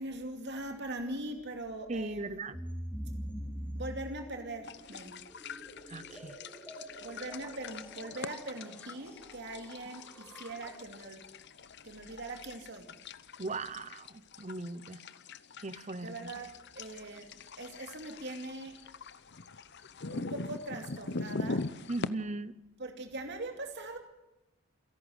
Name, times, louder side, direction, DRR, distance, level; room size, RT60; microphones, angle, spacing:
voice 1, 0.0-2.4 3.7-5.1 7.0-11.2 11.8-12.9 16.0-18.8 20.1-21.7 22.8-24.0, right 2 dB, 50° right, 5 dB, 2.6 m, -41 dB
voice 2, 1.9-2.6 5.9-6.4 13.4-15.0 15.6-16.3 21.9-22.5, right 2 dB, 35° right, 16 dB, 0.8 m, -38 dB
sound 1, 2.5-11.1, equal, 5° left, 4.3 m, -45 dB
sound 2, 4.6-22.1, left 3 dB, 50° left, 0.8 m, -43 dB
28.0 x 11.5 x 8.0 m, 0.93 s
head